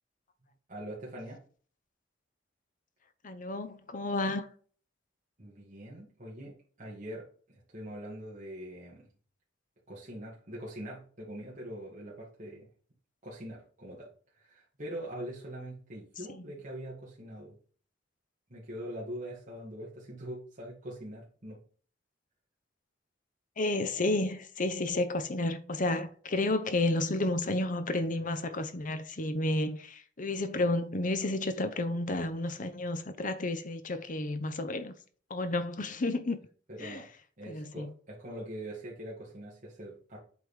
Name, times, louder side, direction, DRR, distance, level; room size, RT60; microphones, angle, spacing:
voice 1, 0.7-1.4 5.4-9.1 9.9-12.7 13.2-14.1 14.3-17.6 18.5-21.6 36.7-37.1 37.4-40.2, right 1 dB, 45° right, 2.1 m, -43 dB
voice 2, 3.2-4.5 16.3-16.4 23.6-34.9 35.3-36.4 36.8-37.0 37.5-37.9, left 2 dB, 45° left, 0.8 m, -31 dB
7.9 x 3.7 x 4.9 m
head